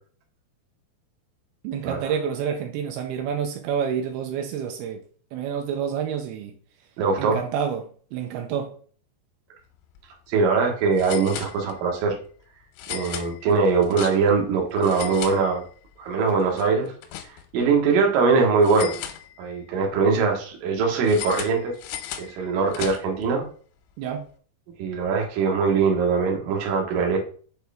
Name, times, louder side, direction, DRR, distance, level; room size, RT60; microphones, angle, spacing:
voice 1, 1.6-5.0 5.3-6.5 7.2-8.8 24.0-24.2, right 7 dB, 85° right, 4 dB, 2.2 m, -28 dB
voice 2, 7.0-7.4 10.3-12.2 12.9-15.6 16.0-16.9 17.5-19.0 19.4-21.7 22.2-23.5 24.8-27.2, right 4 dB, 65° right, 1 dB, 2.4 m, -22 dB
sound 1, 9.8-10.0 10.3-10.4 11.0-12.0 12.8-14.5 14.8-16.0 16.3-17.7 18.6-19.7 21.1-23.3, left 11 dB, 90° left, 3.0 m, -37 dB
6.4 x 4.6 x 3.4 m, 0.43 s
omnidirectional pair, 5.4 m